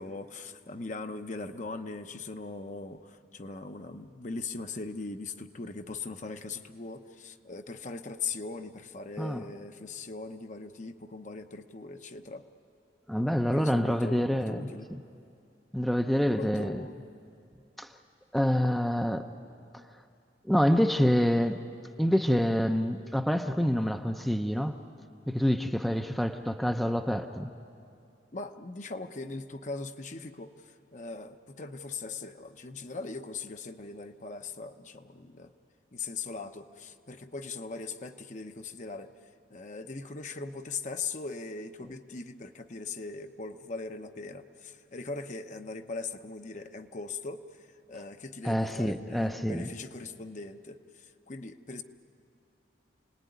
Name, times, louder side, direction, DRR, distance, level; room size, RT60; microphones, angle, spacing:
voice 1, 0.0-12.4 13.5-14.9 16.4-17.0 28.3-35.5 35.9-39.1 39.5-51.8, left 3 dB, 45° left, 7 dB, 0.9 m, -40 dB
voice 2, 13.1-15.0 15.7-16.8 17.8-17.9 18.3-19.3 19.7-19.8 20.4-21.6 22.0-24.8 25.3-27.5 48.4-49.7, equal, ahead, 6 dB, 0.6 m, -27 dB
28.0 x 19.0 x 9.4 m, 2.5 s
head